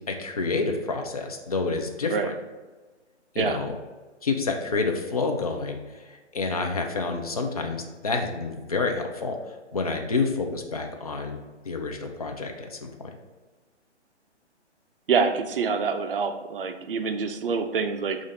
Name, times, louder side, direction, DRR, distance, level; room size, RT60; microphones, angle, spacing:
voice 1, 0.1-2.3 3.3-3.7 4.2-5.8 6.3-9.4 9.7-11.4 11.7-12.9, left 4 dB, 35° left, 3 dB, 0.4 m, -28 dB
voice 2, 15.1-18.2, right 5 dB, 50° right, 7 dB, 0.5 m, -26 dB
5.0 x 2.5 x 4.0 m, 1.3 s
hypercardioid pair, 150°, 35 cm